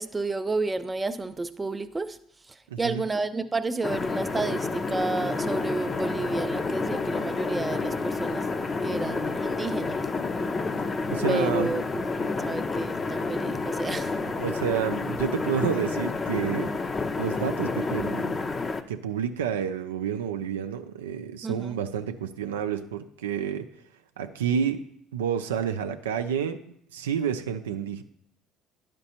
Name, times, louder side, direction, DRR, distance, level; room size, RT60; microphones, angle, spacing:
voice 1, 0.0-2.2 2.8-8.5 8.8-10.0 11.3-12.0 12.4-14.2 21.4-21.8, right 3 dB, 20° right, 11 dB, 0.5 m, -31 dB
voice 2, 2.7-3.0 11.1-11.7 14.4-16.7 17.2-18.4 18.9-23.7 24.2-24.8 25.1-26.6 26.9-28.0, right 8 dB, 85° right, 8 dB, 0.4 m, -29 dB
sound 1, 3.8-18.8, left 3 dB, 30° left, 0.6 m, -29 dB
10.5 x 5.1 x 2.9 m, 0.67 s
hypercardioid pair, 60°, 0 cm